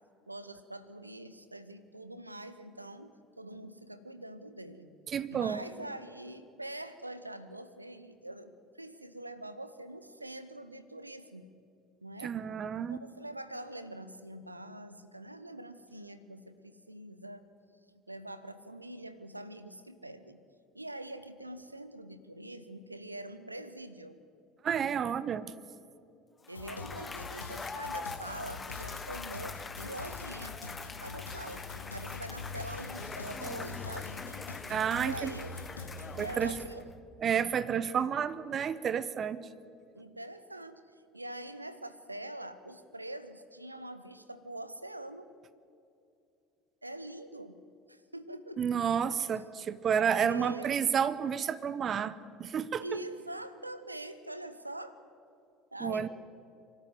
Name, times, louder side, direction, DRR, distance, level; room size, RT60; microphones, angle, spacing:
voice 1, 0.3-4.9 5.3-11.5 12.0-12.4 12.9-17.4 18.1-20.4 20.7-24.2 26.5-30.6 31.0-34.1 35.0-35.5 36.2-36.9 39.9-40.8 41.1-45.3 46.8-47.6 47.9-48.6 50.2-50.7 52.8-55.0 55.7-56.1, right 1 dB, 90° right, 12 dB, 0.9 m, -44 dB
voice 2, 5.1-5.6 12.2-13.0 24.6-25.5 34.7-35.3 36.2-36.6 37.2-39.5 48.6-52.1 52.4-52.8 55.8-56.1, right 7 dB, 35° right, 16 dB, 0.9 m, -30 dB
Cheering / Applause / Crowd, 26.4-36.9, left 4 dB, 20° left, 1.0 m, -43 dB
sound 1, 26.5-36.6, left 4 dB, 85° left, 1.3 m, -44 dB
24.0 x 12.5 x 9.2 m, 2.6 s
figure-of-eight pair, 65°, 0 cm